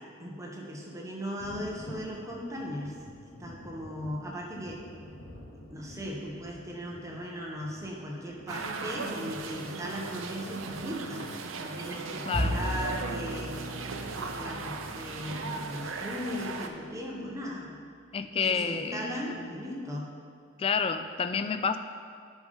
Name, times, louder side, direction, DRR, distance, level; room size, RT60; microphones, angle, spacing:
voice 1, 0.0-4.8 5.5-11.3 11.6-17.7 18.3-20.1, equal, 15° right, -2 dB, 1.0 m, -38 dB
Thunder, 1.4-12.8 14.1-14.2 14.7-14.8, left 1 dB, 55° left, 0.9 m, -50 dB
sound 1, 8.5-16.7, right 4 dB, 70° right, 0.6 m, -38 dB
voice 2, 12.3-12.6 18.1-19.3 20.6-21.8, left 6 dB, 30° left, 9 dB, 0.3 m, -29 dB
Bowed string instrument, 12.3-18.8, equal, 35° right, 1.6 m, -38 dB
10.5 x 5.3 x 3.6 m, 2.2 s
head